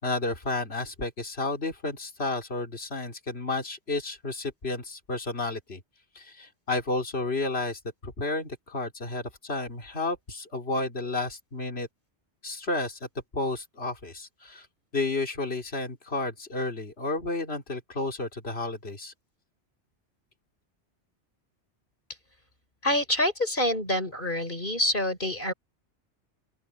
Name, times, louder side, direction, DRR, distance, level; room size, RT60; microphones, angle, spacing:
voice 1, 0.0-5.8 6.1-11.9 12.4-13.1 13.3-14.7 14.9-19.1, left 2 dB, 60° left, 3.6 m, -31 dB
voice 2, 22.8-25.5, left 1 dB, 45° left, 5.0 m, -26 dB
open air
omnidirectional pair, 1.2 m